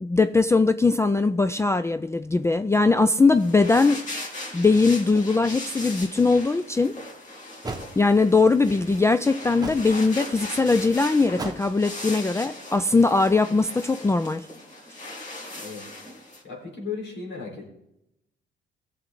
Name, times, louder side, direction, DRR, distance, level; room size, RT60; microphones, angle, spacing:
voice 1, 0.0-4.0 4.5-6.9 8.0-14.5, left 3 dB, 15° left, 0.3 m, -20 dB
sound 1, 3.3-16.4, left 2 dB, 40° left, 3.1 m, -38 dB
sound 2, 6.7-6.8 7.6-7.9 9.6-9.9 11.3-11.7, right 2 dB, 20° right, 1.2 m, -33 dB
voice 2, 16.4-17.7, left 5 dB, 65° left, 4.0 m, -35 dB
17.0 x 7.1 x 3.8 m
cardioid pair, 90°, 20 cm